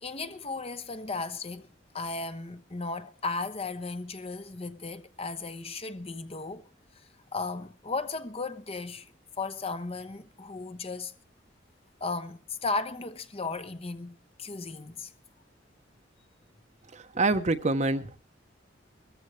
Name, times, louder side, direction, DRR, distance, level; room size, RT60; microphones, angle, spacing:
voice 1, 0.0-1.7 1.9-6.7 7.3-9.1 9.4-11.1 12.0-15.1, left 3 dB, 35° left, 1.0 m, -35 dB
voice 2, 16.9-18.2, right 2 dB, 40° right, 1.0 m, -26 dB
21.0 x 14.5 x 3.3 m
head